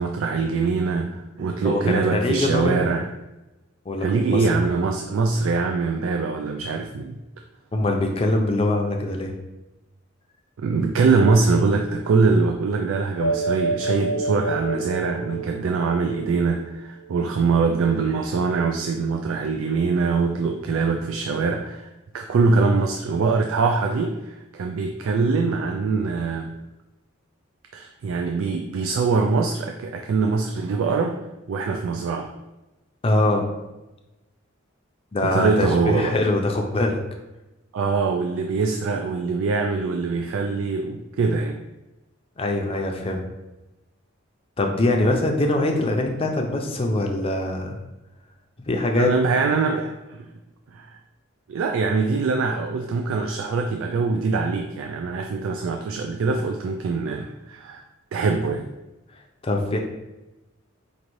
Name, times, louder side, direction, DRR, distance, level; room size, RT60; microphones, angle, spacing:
voice 1, 0.0-3.1 4.0-7.2 10.6-21.9 22.1-26.5 27.7-31.2 31.5-32.3 35.2-36.2 37.7-41.6 49.0-50.2 50.7-51.0 51.5-57.8 58.1-58.7, right 4 dB, 75° right, 4 dB, 0.3 m, -23 dB
voice 2, 1.6-2.9 3.9-4.1 4.3-4.5 7.7-9.3 33.0-33.4 35.1-37.0 42.4-43.3 44.6-47.8 48.7-49.1 59.4-59.8, left 2 dB, 30° left, 2 dB, 0.5 m, -23 dB
sound 1, 13.2-17.1, right 2 dB, 80° left, 0.7 m, -28 dB
5.1 x 2.6 x 3.1 m, 1.0 s
head